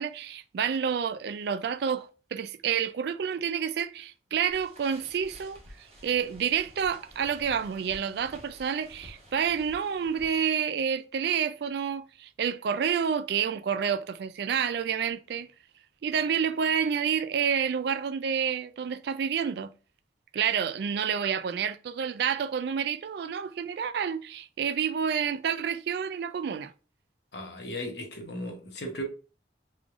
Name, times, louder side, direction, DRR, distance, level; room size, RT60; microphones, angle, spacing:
voice 1, 0.0-5.6 6.0-15.5 16.0-19.7 20.3-26.7, right 7 dB, 60° right, 0.3 m, -29 dB
sound 1, 4.5-10.4, equal, 35° right, 1.2 m, -51 dB
voice 2, 27.3-29.0, equal, 65° left, 1.0 m, -36 dB
3.6 x 3.3 x 2.4 m
head